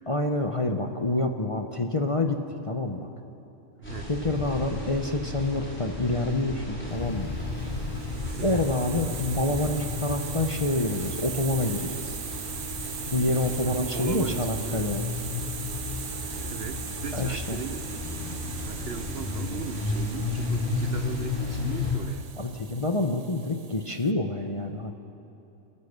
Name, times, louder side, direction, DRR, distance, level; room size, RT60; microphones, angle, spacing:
voice 1, 0.1-3.1 4.1-7.3 8.4-12.2 13.1-15.0 17.1-17.6 22.4-24.9, left 2 dB, 25° left, 4 dB, 0.8 m, -27 dB
sound 1, 3.8-21.9, left 3 dB, 5° left, 4.5 m, -33 dB
voice 2, 3.8-4.1 8.3-8.6 13.7-14.8 16.4-18.2 18.6-22.3, right 7 dB, 55° right, 8 dB, 0.8 m, -37 dB
Hiss, 7.5-24.1, right 7 dB, 85° right, 0.3 m, -40 dB
27.5 x 14.0 x 6.8 m, 2.9 s
omnidirectional pair, 1.5 m